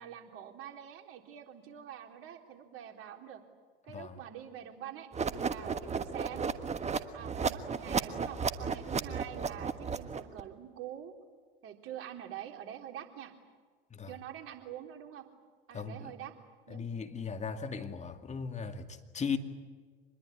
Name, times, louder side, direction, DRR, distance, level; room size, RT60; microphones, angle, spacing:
voice 1, 0.0-3.4 3.8-5.1 5.4-6.5 7.1-11.1 11.6-13.3 14.1-15.2 15.7-16.3 16.7-16.9, right 10 dB, 45° right, 3.6 m, -46 dB
sound 1, 5.1-10.4, right 5 dB, 20° right, 1.4 m, -34 dB
voice 2, 15.7-16.1 16.7-19.4, left 6 dB, 25° left, 2.4 m, -37 dB
25.5 x 21.0 x 9.7 m
hypercardioid pair, 80°, 30 cm